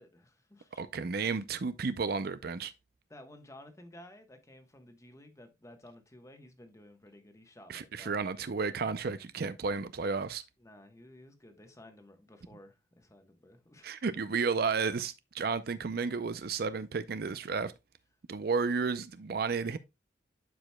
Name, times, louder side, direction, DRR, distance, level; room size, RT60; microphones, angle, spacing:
voice 1, 0.0-0.8 3.1-8.2 10.6-14.1, left 1 dB, 15° left, 1.1 m, -54 dB
voice 2, 0.8-2.7 7.7-10.4 13.8-17.7 18.3-19.8, right 5 dB, 55° right, 0.5 m, -32 dB
11.5 x 5.0 x 2.2 m
head